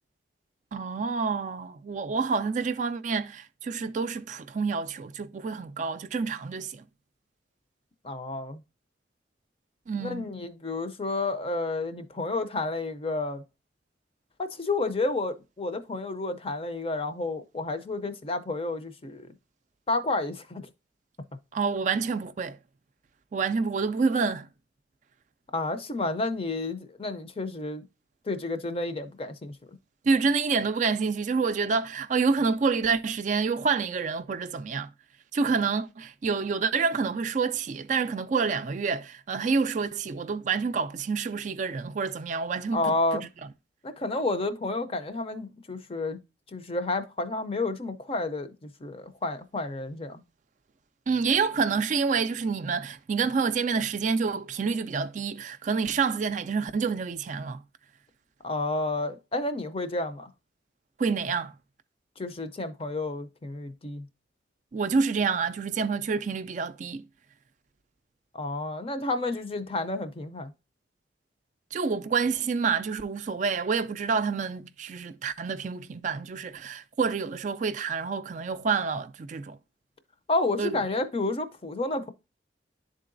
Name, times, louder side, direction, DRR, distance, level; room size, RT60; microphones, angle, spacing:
voice 1, 0.7-6.9 9.9-10.3 21.5-22.6 23.3-24.5 30.0-34.9 35.3-43.3 51.1-57.6 61.0-61.5 64.7-67.0 71.7-79.6 80.6-80.8, right 5 dB, 40° right, 0.3 m, -28 dB
voice 2, 8.0-8.6 10.0-13.4 14.4-19.3 19.9-20.6 25.5-27.8 28.3-29.5 42.7-43.3 43.8-46.2 46.5-50.2 58.4-60.3 62.2-64.0 68.3-70.5 80.3-82.1, left 2 dB, 30° left, 0.5 m, -30 dB
11.0 x 3.8 x 2.5 m
head